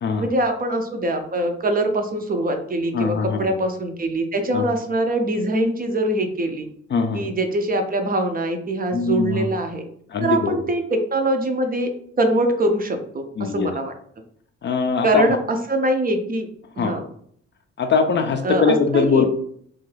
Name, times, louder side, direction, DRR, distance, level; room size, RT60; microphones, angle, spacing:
voice 1, 0.2-6.7 7.1-9.8 10.2-11.9 12.2-13.9 15.0-16.5 16.8-17.0 18.4-19.3, right 1 dB, 30° right, 5 dB, 0.4 m, -23 dB
voice 2, 2.9-3.5 4.5-4.6 6.9-7.2 8.9-9.5 10.1-10.6 13.4-13.7 14.6-15.2 16.8-16.9 17.8-19.3, left 5 dB, 40° left, 6 dB, 0.4 m, -21 dB
2.5 x 2.3 x 3.2 m, 0.63 s
cardioid pair, 90°, 30 cm